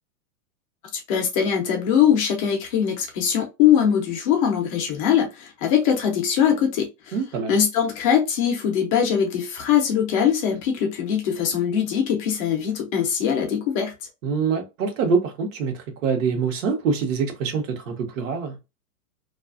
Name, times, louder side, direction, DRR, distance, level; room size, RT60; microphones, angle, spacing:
voice 1, 0.9-7.2 7.5-13.9, left 8 dB, 25° left, 0.4 m, -22 dB
voice 2, 7.1-7.5 14.2-18.6, right 5 dB, 60° right, 0.9 m, -25 dB
2.4 x 2.3 x 2.3 m
supercardioid pair, 150°, 44 cm